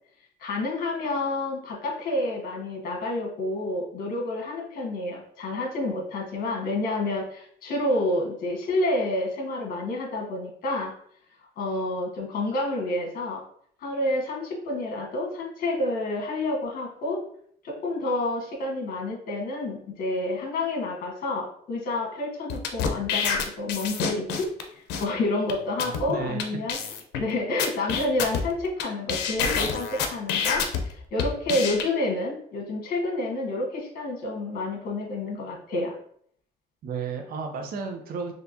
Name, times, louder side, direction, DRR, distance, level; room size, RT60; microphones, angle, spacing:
voice 1, 0.4-10.9 11.6-13.4 13.8-17.2 17.6-24.5 25.0-26.8 27.2-35.9, left 2 dB, 60° left, 0 dB, 1.5 m, -29 dB
sound 1, 22.5-24.6 24.9-25.0 25.5-25.6 25.8-26.0 26.4-26.5 26.7-27.2 27.6-28.8 29.1-30.8 31.2-31.8, left 7 dB, 85° left, 0.6 m, -27 dB
voice 2, 25.8-26.4 36.8-38.3, right 5 dB, 60° right, 4 dB, 0.8 m, -33 dB
4.4 x 3.2 x 2.7 m, 0.62 s
cardioid pair, 110°, 17 cm